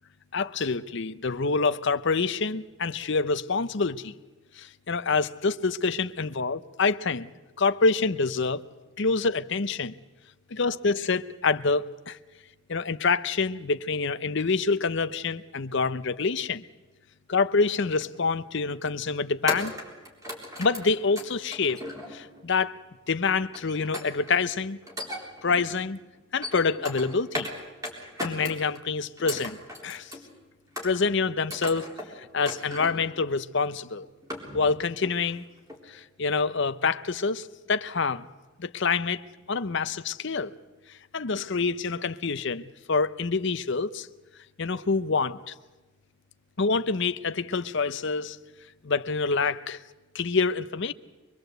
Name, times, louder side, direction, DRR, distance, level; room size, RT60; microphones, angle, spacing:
voice 1, 0.3-4.1 4.6-7.3 7.6-8.6 9.0-9.9 10.5-12.2 12.7-16.6 17.3-19.7 20.6-21.8 22.1-22.8 23.1-24.8 25.4-26.0 26.3-27.5 28.2-29.6 29.8-30.1 30.8-34.1 34.5-35.5 35.9-38.2 38.6-40.5 41.1-44.1 44.6-45.5 46.6-48.4 48.8-49.8 50.1-50.9, left 4 dB, 55° left, 0.7 m, -26 dB
sound 1, 18.0-18.3 19.5-22.4 23.5-24.4 24.8-25.7 26.2-27.6 27.8-28.8 29.2-30.3 30.8-31.2 31.5-32.1 32.4-33.1 33.6-33.7 34.0-34.8 35.0-35.3 35.7-35.8, left 1 dB, 15° right, 3.8 m, -37 dB
24.5 x 22.0 x 8.0 m
head